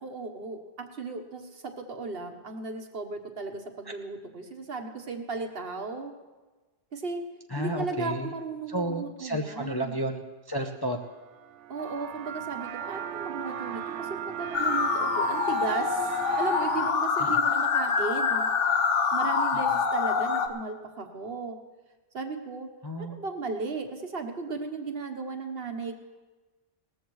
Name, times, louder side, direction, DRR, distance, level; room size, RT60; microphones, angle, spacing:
voice 1, 0.0-6.1 6.9-7.2 7.6-9.9 11.7-14.1 14.4-18.5 19.1-21.6 22.1-22.7 23.0-26.0, right 4 dB, 55° right, 5 dB, 1.3 m, -35 dB
voice 2, 7.5-8.3 8.7-11.0 17.2-17.4 22.8-23.2, equal, 25° left, 3 dB, 0.6 m, -32 dB
sound 1, 11.1-16.9, right 8 dB, 80° right, 1.0 m, -36 dB
police siren imitation, 14.5-20.5, left 5 dB, 85° left, 1.2 m, -26 dB
18.5 x 14.0 x 3.1 m, 1.2 s
omnidirectional pair, 1.2 m